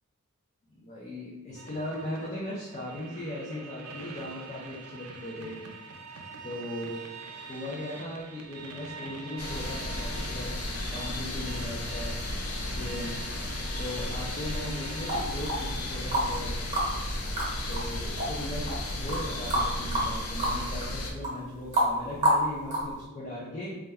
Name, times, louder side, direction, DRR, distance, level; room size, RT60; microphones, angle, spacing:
voice 1, 0.7-5.6 6.4-7.1 7.5-12.2 12.6-13.2 13.8-16.6 17.7-23.8, left 1 dB, 30° left, -6 dB, 0.4 m, -38 dB
sound 1, 1.5-15.2, right 4 dB, 75° right, 0.4 m, -45 dB
sound 2, 9.4-21.1, left 1 dB, 85° left, 0.5 m, -34 dB
sound 3, 15.1-16.4 16.7-23.0, right 1 dB, 35° right, 0.9 m, -28 dB
2.3 x 2.1 x 3.4 m, 1.1 s
head